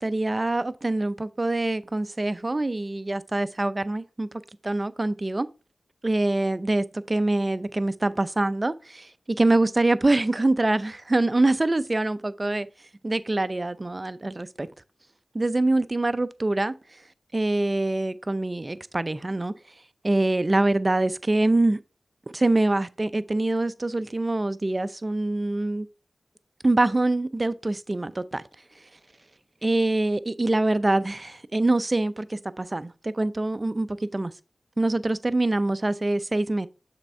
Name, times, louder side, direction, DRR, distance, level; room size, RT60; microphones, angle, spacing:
voice 1, 0.0-4.3 4.6-5.5 6.0-12.7 13.0-14.7 15.3-16.7 17.3-19.5 20.0-21.8 22.3-25.9 26.6-28.4 29.6-34.3 34.8-36.7, right 2 dB, 35° right, 0.5 m, -24 dB
6.7 x 3.6 x 4.5 m
cardioid pair, 45°, 0 cm